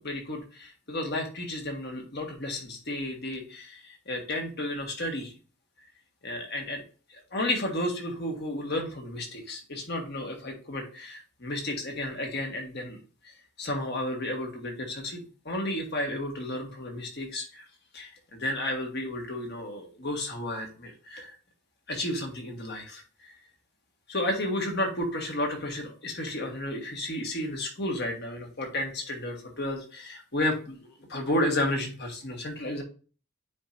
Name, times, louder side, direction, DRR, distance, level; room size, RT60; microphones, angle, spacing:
voice 1, 0.0-5.3 6.2-6.8 7.1-13.0 13.2-17.6 17.9-21.4 21.9-23.3 24.1-32.8, left 1 dB, 50° left, 2 dB, 1.6 m, -32 dB
9.3 x 4.4 x 2.6 m, 0.37 s
head